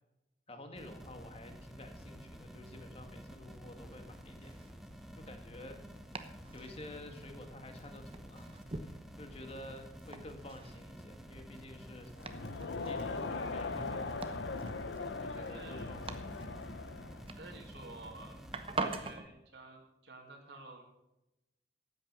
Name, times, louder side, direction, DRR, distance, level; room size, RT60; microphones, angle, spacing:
voice 1, 0.5-4.5 5.2-5.8 6.5-12.4 12.8-14.5 15.1-16.5, left 1 dB, 35° left, 5 dB, 1.8 m, -51 dB
sound 1, 0.7-19.2, equal, ahead, 1.0 m, -51 dB
Domestic sounds home sounds, 3.7-19.3, right 3 dB, 30° right, 0.9 m, -46 dB
Crowd, 12.2-17.4, left 3 dB, 75° left, 0.8 m, -39 dB
voice 2, 15.3-15.9 17.4-18.4 18.8-20.8, right 2 dB, 70° right, -1 dB, 2.5 m, -51 dB
13.0 x 9.3 x 6.1 m, 0.92 s
head